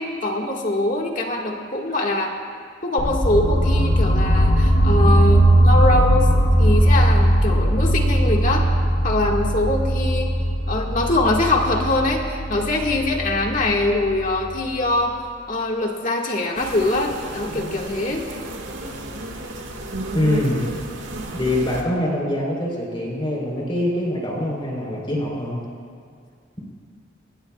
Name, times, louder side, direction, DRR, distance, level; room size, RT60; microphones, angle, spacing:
voice 1, 0.0-2.3 2.8-6.3 6.6-8.7 9.0-10.3 10.7-15.2 15.5-18.2, left 2 dB, 45° left, 0 dB, 1.8 m, -23 dB
sound 1, 3.0-14.9, right 1 dB, 60° left, 4.1 m, -19 dB
sound 2, 16.6-21.8, right 1 dB, 80° right, 1.8 m, -32 dB
voice 2, 20.1-20.6 21.3-25.6, left 1 dB, 25° left, -2 dB, 3.9 m, -24 dB
24.0 x 19.0 x 2.4 m, 2.2 s
head